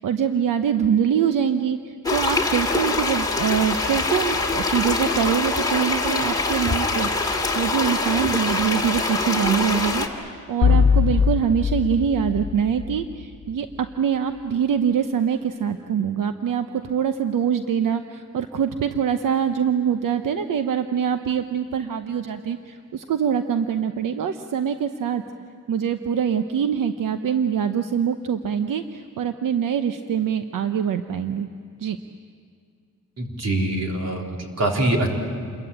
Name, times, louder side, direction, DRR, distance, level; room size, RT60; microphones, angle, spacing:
voice 1, 0.0-25.2 25.7-31.5 31.8-32.0, right 8 dB, 85° right, 8 dB, 0.9 m, -24 dB
sound 1, 2.0-10.1, left 3 dB, 10° left, 2.5 m, -24 dB
sound 2, 10.6-13.5, left 6 dB, 55° left, 1.2 m, -21 dB
voice 2, 33.2-35.1, right 1 dB, 55° right, 1 dB, 3.9 m, -24 dB
28.5 x 22.5 x 8.9 m, 2.3 s
wide cardioid pair, 165°, 31 cm